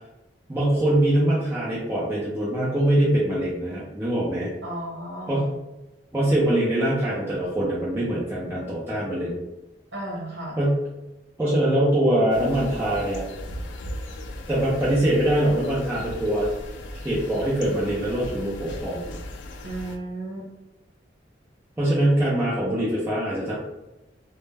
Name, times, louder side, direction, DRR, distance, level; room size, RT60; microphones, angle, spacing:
voice 1, 0.5-4.5 5.3-5.5 6.1-9.4 10.6-10.8 11.4-13.2 14.5-16.5 16.9-19.0 21.8-23.5, right 1 dB, 10° right, -8 dB, 0.5 m, -23 dB
voice 2, 4.6-5.6 9.9-10.6 19.6-20.5, right 1 dB, 90° right, -3 dB, 1.0 m, -34 dB
sound 1, 12.3-20.0, left 1 dB, 70° left, 0.3 m, -37 dB
2.1 x 2.0 x 3.2 m, 1.0 s
head